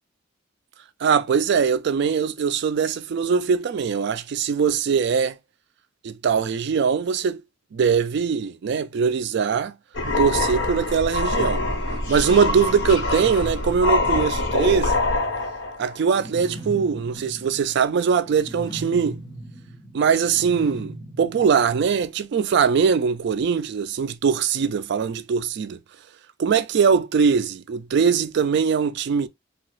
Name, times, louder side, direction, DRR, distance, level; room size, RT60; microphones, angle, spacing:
voice 1, 1.0-5.4 6.0-7.4 7.7-9.7 10.2-11.6 12.1-14.9 15.8-19.2 19.9-25.8 26.4-29.3, right 6 dB, 60° right, 0.3 m, -21 dB
sound 1, 9.9-16.0, left 2 dB, 70° left, 0.9 m, -24 dB
sound 2, 16.1-22.2, right 1 dB, 20° left, 1.0 m, -39 dB
3.0 x 2.3 x 3.0 m
head